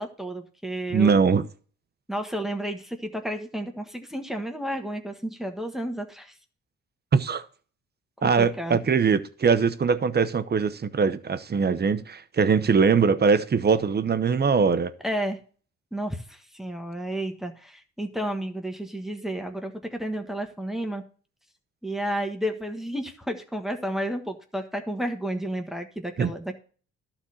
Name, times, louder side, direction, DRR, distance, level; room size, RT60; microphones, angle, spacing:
voice 1, 0.0-1.2 2.1-6.3 8.2-8.8 15.0-15.4 15.9-21.0 21.8-26.5, right 1 dB, ahead, 1.4 m, -31 dB
voice 2, 0.9-1.4 7.1-7.4 8.2-14.9 26.2-26.3, right 5 dB, 35° right, 0.9 m, -22 dB
12.0 x 4.3 x 6.4 m
cardioid pair, 90°, 30 cm